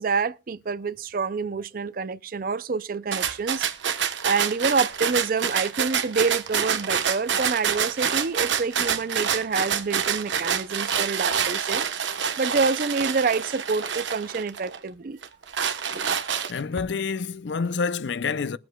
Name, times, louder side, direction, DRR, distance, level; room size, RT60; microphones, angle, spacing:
voice 1, 0.0-11.9 12.4-15.2, right 4 dB, 45° right, 0.4 m, -27 dB
sound 1, 3.1-14.8 15.2-16.8, right 7 dB, 80° right, 1.1 m, -27 dB
voice 2, 16.5-18.6, left 5 dB, 70° left, 0.5 m, -28 dB
22.0 x 7.7 x 2.3 m
head